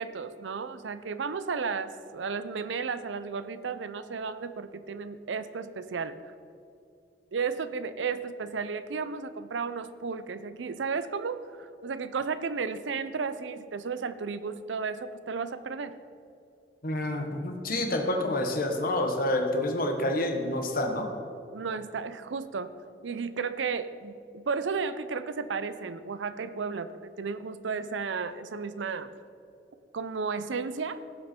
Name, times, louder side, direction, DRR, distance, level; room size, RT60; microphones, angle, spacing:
voice 1, 0.0-6.3 7.3-16.0 21.5-22.7 23.0-29.1 29.9-31.0, right 5 dB, 85° right, 13 dB, 0.5 m, -33 dB
voice 2, 16.8-21.1, left 1 dB, 55° left, 3 dB, 1.2 m, -28 dB
16.5 x 5.5 x 4.4 m, 2.5 s
head